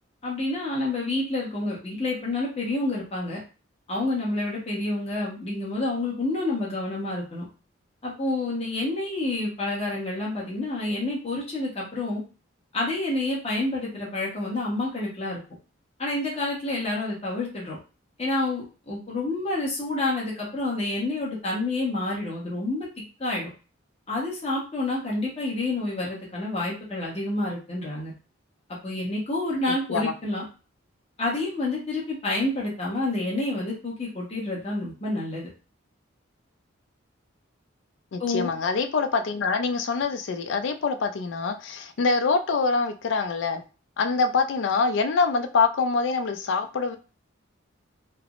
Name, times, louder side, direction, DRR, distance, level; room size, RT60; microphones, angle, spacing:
voice 1, 0.2-3.4 3.9-7.4 8.0-12.2 12.7-15.4 16.0-17.8 18.2-22.9 23.2-23.5 24.1-28.1 28.8-30.4 31.2-35.5 38.2-38.5, left 2 dB, 30° left, -4 dB, 1.0 m, -28 dB
voice 2, 29.7-30.1 38.1-43.6 44.0-47.0, left 4 dB, 60° left, 8 dB, 0.4 m, -25 dB
3.3 x 2.0 x 2.4 m, 0.34 s
head